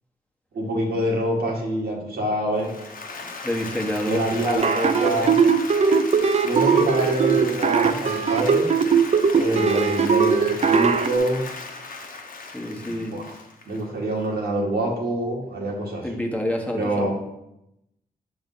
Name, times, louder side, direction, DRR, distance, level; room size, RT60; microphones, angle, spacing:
voice 1, 0.5-2.7 4.0-5.3 6.4-8.6 9.3-11.4 12.8-13.4 13.7-16.0 16.7-17.1, right 1 dB, 85° right, -2 dB, 1.6 m, -26 dB
Applause, 2.5-14.3, left 3 dB, 60° left, 1.0 m, -37 dB
voice 2, 3.4-5.3 9.5-10.0 12.5-13.1 16.0-17.1, left 1 dB, 10° left, 0 dB, 1.1 m, -28 dB
sound 1, 4.5-11.1, right 6 dB, 45° right, 0.5 m, -19 dB
6.7 x 3.5 x 5.4 m, 0.85 s
cardioid pair, 75°, 16 cm